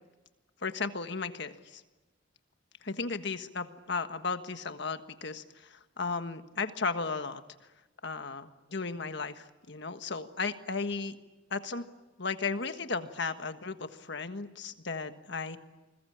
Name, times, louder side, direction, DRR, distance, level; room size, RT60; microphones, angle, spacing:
voice 1, 0.6-1.8 2.8-7.4 8.0-11.2 11.5-11.8 12.2-15.6, left 4 dB, 60° left, 9 dB, 1.5 m, -35 dB
28.5 x 21.5 x 8.7 m, 1.1 s
head